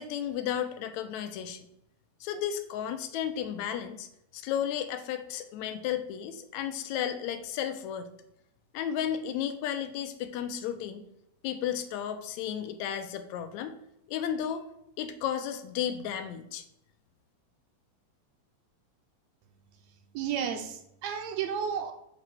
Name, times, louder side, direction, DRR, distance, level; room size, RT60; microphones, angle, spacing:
voice 1, 0.0-1.7 2.2-4.1 4.3-8.1 8.7-11.0 11.4-13.8 14.1-14.7 15.0-16.6, left 9 dB, 80° left, 9 dB, 1.9 m, -33 dB
voice 2, 20.1-21.9, right 8 dB, 75° right, 6 dB, 1.8 m, -32 dB
7.5 x 3.2 x 6.0 m, 0.79 s
omnidirectional pair, 3.3 m